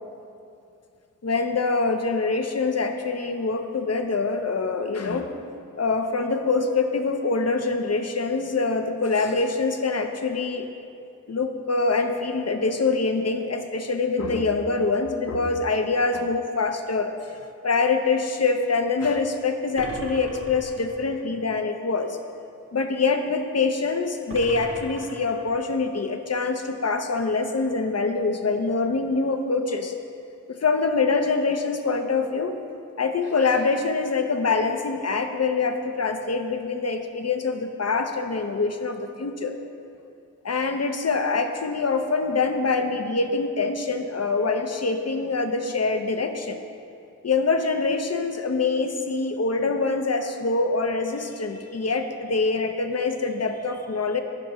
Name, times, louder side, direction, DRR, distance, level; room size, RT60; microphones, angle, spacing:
voice 1, 1.2-5.3 5.8-10.7 11.3-17.1 17.6-22.2 22.7-29.9 30.5-32.6 33.0-39.5 40.4-46.6 47.2-54.2, left 4 dB, 45° left, 6 dB, 0.8 m, -25 dB
sound 1, 19.8-21.2 24.3-25.8, right 1 dB, 40° right, 1.2 m, -39 dB
15.0 x 5.2 x 3.0 m, 2.5 s
cardioid pair, 40°, 34 cm